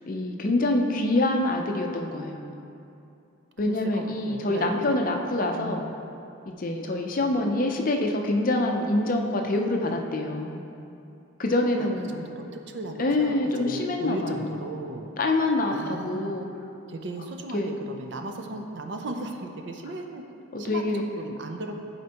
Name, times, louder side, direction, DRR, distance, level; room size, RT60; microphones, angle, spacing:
voice 1, 0.1-2.4 3.6-5.8 6.5-10.6 11.4-12.1 13.0-14.5 15.2-16.5 17.5-17.7 20.5-21.0, left 2 dB, 40° left, 2 dB, 0.5 m, -26 dB
voice 2, 3.6-5.0 5.6-5.9 11.8-15.1 15.7-16.4 16.9-20.2 20.6-21.8, right 2 dB, 55° right, 4 dB, 0.5 m, -36 dB
11.0 x 4.3 x 2.9 m, 2.7 s
head